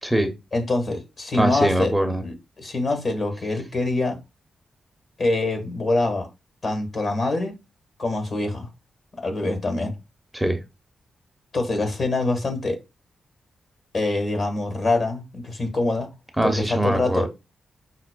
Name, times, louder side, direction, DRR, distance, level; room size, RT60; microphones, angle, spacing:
voice 1, 0.0-0.3 1.3-2.2 10.3-10.6 16.4-17.3, right 1 dB, 5° right, 0.7 m, -22 dB
voice 2, 0.5-1.9 2.2-4.2 5.2-6.3 6.6-7.5 8.0-8.7 9.2-10.0 11.5-12.8 13.9-16.1 16.4-17.3, left 2 dB, 55° left, 1.3 m, -24 dB
5.9 x 2.0 x 2.2 m
supercardioid pair, 45°, 0 cm